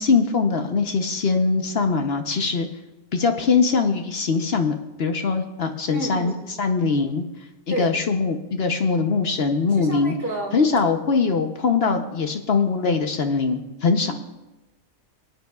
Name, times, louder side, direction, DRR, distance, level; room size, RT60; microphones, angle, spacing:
voice 1, 0.0-2.7 3.1-7.2 7.7-10.1 10.5-14.1, left 4 dB, 50° left, 6 dB, 0.9 m, -22 dB
voice 2, 5.9-6.4 7.7-7.9 8.7-8.8 9.7-10.6 14.0-14.1, right 1 dB, 10° right, -2 dB, 1.8 m, -30 dB
23.0 x 8.9 x 2.3 m, 1.0 s
omnidirectional pair, 1.4 m